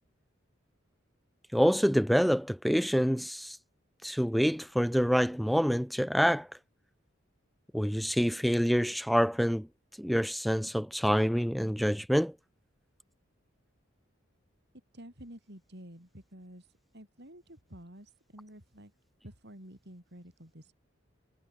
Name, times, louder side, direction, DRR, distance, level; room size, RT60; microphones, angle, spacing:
voice 1, 1.5-3.6 4.0-6.5 7.7-9.7 10.0-12.3, equal, ahead, 0.4 m, -26 dB
voice 2, 14.9-18.9 19.2-20.7, equal, 55° right, 7.7 m, -50 dB
head